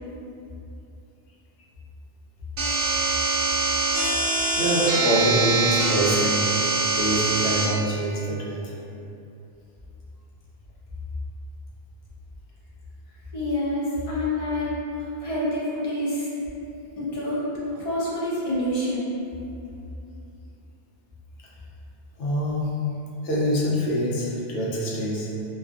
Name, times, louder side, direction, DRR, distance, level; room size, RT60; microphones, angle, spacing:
sound 1, 2.6-7.7, right 3 dB, 60° right, 0.6 m, -23 dB
voice 1, 4.6-6.6 6.9-8.7 22.2-22.7 23.2-25.3, right 1 dB, 80° left, -5 dB, 0.9 m, -25 dB
voice 2, 13.3-16.3 17.0-19.2, left 1 dB, 45° left, -8 dB, 0.5 m, -27 dB
2.4 x 2.4 x 2.4 m, 2.7 s
omnidirectional pair, 1.2 m